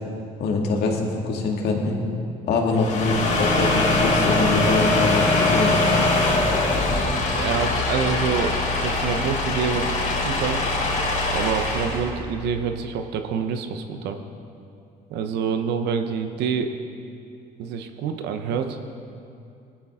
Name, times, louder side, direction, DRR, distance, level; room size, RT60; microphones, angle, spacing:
voice 1, 0.4-2.0 2.4-5.7, left 3 dB, 70° left, 0 dB, 2.1 m, -24 dB
sound 1, 2.7-12.1, left 2 dB, 50° left, 3.7 m, -22 dB
voice 2, 7.3-10.6 11.3-14.2 15.1-16.8 17.6-18.8, right 6 dB, 85° right, 6 dB, 0.9 m, -27 dB
19.0 x 12.0 x 3.8 m, 2.5 s
cardioid pair, 110°, 17 cm